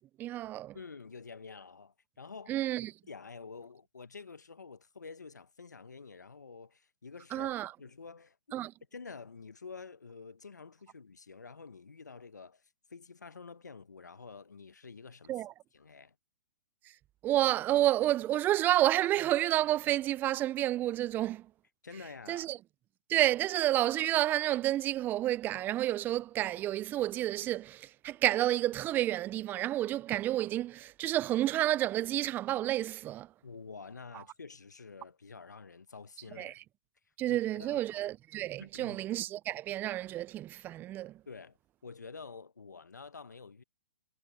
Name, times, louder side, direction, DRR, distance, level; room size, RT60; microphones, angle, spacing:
voice 1, 0.2-0.8 2.5-2.9 7.3-7.7 8.5-8.7 15.3-15.5 17.2-21.4 22.3-22.6 23.1-33.3 36.4-36.5 37.2-41.1, right 14 dB, 20° right, 0.5 m, -30 dB
voice 2, 0.7-2.6 3.1-7.5 7.8-8.6 8.9-12.6 12.9-15.4 15.7-16.1 21.8-22.5 33.4-36.5 37.3-37.9 38.6-39.0 41.3-41.6 41.8-43.6, left 4 dB, 90° left, 1.2 m, -48 dB
hypercardioid pair, 125°, 9 cm